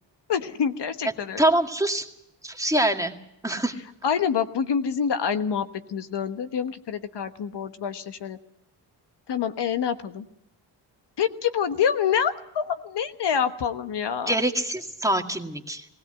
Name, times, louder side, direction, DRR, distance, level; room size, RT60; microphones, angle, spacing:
voice 1, 0.3-1.4 4.0-8.4 9.3-10.3 11.2-14.4, left 7 dB, 70° left, 9 dB, 1.4 m, -26 dB
voice 2, 1.4-2.1 2.4-3.1 3.4-3.7 14.3-15.9, right 1 dB, 5° right, 3 dB, 2.1 m, -24 dB
20.0 x 17.0 x 7.8 m, 0.79 s
cardioid pair, 80°, 43 cm